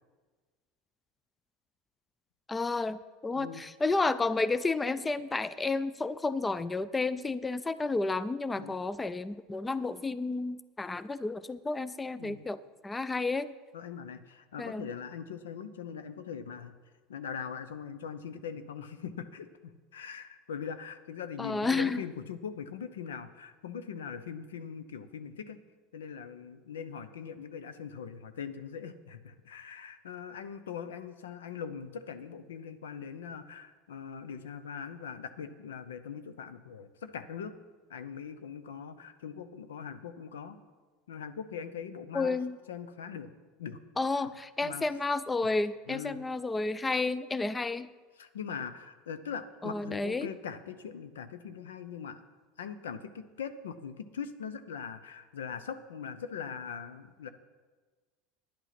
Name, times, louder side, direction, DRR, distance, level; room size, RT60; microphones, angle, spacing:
voice 1, 2.5-13.5 14.6-14.9 21.4-22.0 42.1-42.6 44.0-47.9 49.6-50.3, left 3 dB, 15° left, 16 dB, 0.4 m, -31 dB
voice 2, 13.7-16.7 17.1-25.6 25.9-37.5 37.9-40.6 41.1-42.4 42.7-43.3 43.6-43.8 44.1-44.3 44.6-44.8 45.9-46.2 48.2-52.2 52.6-57.3, left 7 dB, 85° left, 11 dB, 0.7 m, -41 dB
10.5 x 8.2 x 5.9 m, 1.4 s
hypercardioid pair, 90°, 0 cm